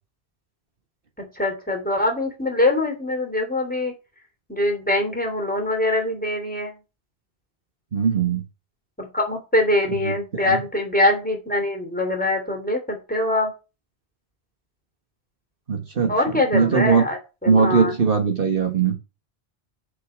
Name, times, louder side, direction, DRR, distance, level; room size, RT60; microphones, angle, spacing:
voice 1, 1.2-3.9 4.5-6.8 9.0-13.5 16.1-17.9, left 2 dB, 10° left, 3.1 m, -23 dB
voice 2, 7.9-8.4 10.0-10.6 15.7-16.1 16.5-17.0 17.5-19.0, right 6 dB, 60° right, 1.5 m, -20 dB
6.8 x 5.7 x 7.2 m
omnidirectional pair, 1.1 m